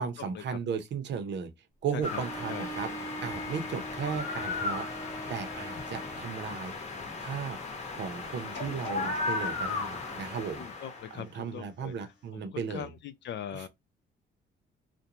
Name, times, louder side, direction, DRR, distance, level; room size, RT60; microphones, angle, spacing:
voice 1, 0.0-1.5 1.8-2.9 3.2-4.9 5.3-6.9 7.2-7.6 7.9-10.6 11.1-12.9 13.5-13.6, right 6 dB, 60° right, 0.7 m, -35 dB
sound 1, 2.0-11.2, left 3 dB, 35° left, 0.9 m, -36 dB
Bowed string instrument, 2.0-6.4, right 1 dB, 15° left, 0.5 m, -42 dB
sound 2, 8.5-11.6 12.2-12.3, left 5 dB, 80° left, 1.1 m, -47 dB
voice 2, 10.6-11.9 12.3-13.7, left 9 dB, 65° left, 0.5 m, -41 dB
2.5 x 2.1 x 2.9 m
cardioid pair, 90°, 20 cm